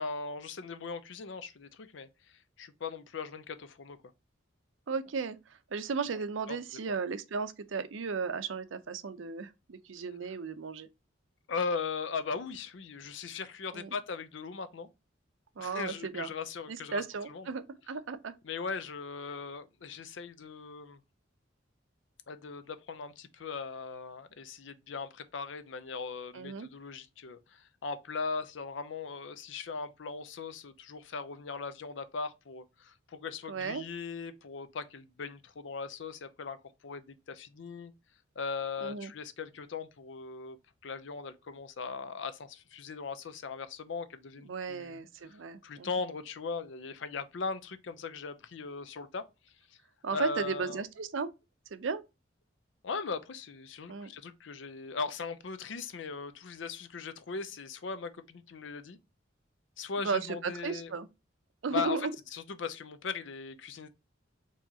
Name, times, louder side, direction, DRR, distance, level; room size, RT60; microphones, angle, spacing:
voice 1, 0.0-2.1 2.6-4.0 6.5-6.6 6.9-7.0 11.5-14.9 15.6-17.5 18.4-21.0 22.3-36.6 36.8-37.9 38.4-40.6 40.8-45.0 45.3-45.4 45.6-49.3 50.1-50.8 52.8-59.0 59.8-60.9 61.7-62.0 62.3-63.9, left 4 dB, 70° left, 0.5 m, -39 dB
voice 2, 4.9-10.9 13.7-13.9 15.6-16.3 16.7-18.3 26.3-26.7 33.5-33.8 38.8-39.1 44.4-45.9 50.0-51.3 51.7-52.0 53.9-54.1 60.0-61.1 61.6-62.1, right 5 dB, 80° right, 0.5 m, -35 dB
4.6 x 2.9 x 2.7 m
head